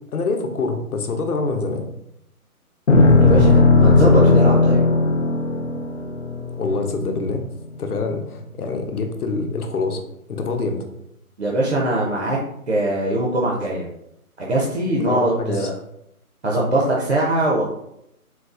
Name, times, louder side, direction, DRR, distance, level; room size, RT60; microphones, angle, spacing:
voice 1, 0.1-1.9 3.1-3.5 6.6-7.4 7.8-10.0 10.3-10.8 15.1-15.7, left 3 dB, 80° left, 5 dB, 0.8 m, -25 dB
sound 1, 2.9-7.3, left 3 dB, 55° left, 0.5 m, -16 dB
voice 2, 3.2-4.8 11.4-12.4 12.7-13.9 14.4-15.7 16.4-17.7, right 2 dB, 50° right, -3 dB, 0.5 m, -21 dB
3.9 x 2.3 x 2.5 m, 0.78 s
hypercardioid pair, 175°, 45 cm